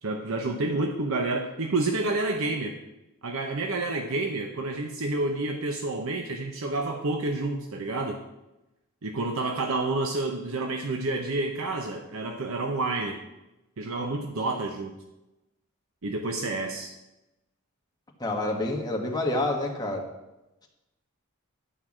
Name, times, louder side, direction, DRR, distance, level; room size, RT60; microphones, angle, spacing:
voice 1, 0.0-2.8 3.2-8.2 9.0-13.2 13.8-14.9 16.0-16.9, right 2 dB, 65° right, 3 dB, 0.8 m, -29 dB
voice 2, 18.2-20.0, left 2 dB, 20° left, 0 dB, 1.5 m, -28 dB
11.0 x 4.7 x 7.3 m, 0.98 s
head